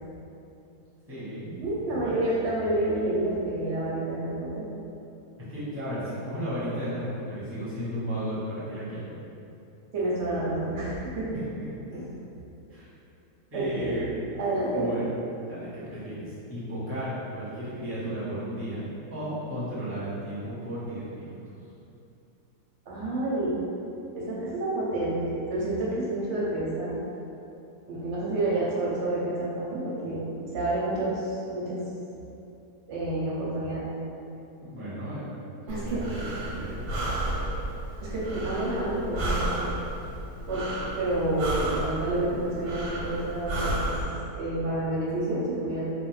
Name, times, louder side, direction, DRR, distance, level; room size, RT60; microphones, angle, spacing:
voice 1, 1.1-1.6 1.9-2.2 5.5-9.1 11.3-11.4 12.7-12.9 13.5-14.3 14.7-15.2 15.5-21.4 34.6-35.4 35.6-36.9, equal, 10° right, -12 dB, 0.7 m, -34 dB
voice 2, 1.6-4.6 9.9-11.4 11.9-12.1 13.5-14.0 14.4-14.9 22.9-23.6 24.1-26.9 27.9-30.2 30.5-31.8 32.9-33.9 35.7-36.0 38.0-39.6 40.5-40.7 40.9-43.8 44.3-45.8, right 2 dB, 65° right, -7 dB, 0.8 m, -29 dB
Breathing, 35.7-44.0, right 1 dB, 90° right, 1.2 m, -32 dB
2.5 x 2.2 x 3.1 m, 2.8 s
omnidirectional pair, 1.7 m